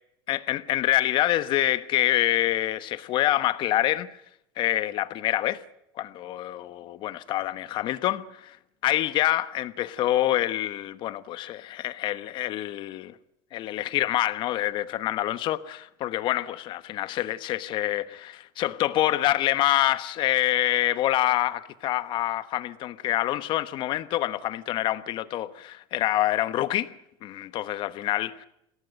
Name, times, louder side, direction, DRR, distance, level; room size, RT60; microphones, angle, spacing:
voice 1, 0.3-4.2 4.6-5.6 6.0-8.6 8.8-13.2 13.5-27.0 27.2-28.5, left 14 dB, 40° left, 1.1 m, -26 dB
21.5 x 17.5 x 9.0 m
supercardioid pair, 140°, 12 cm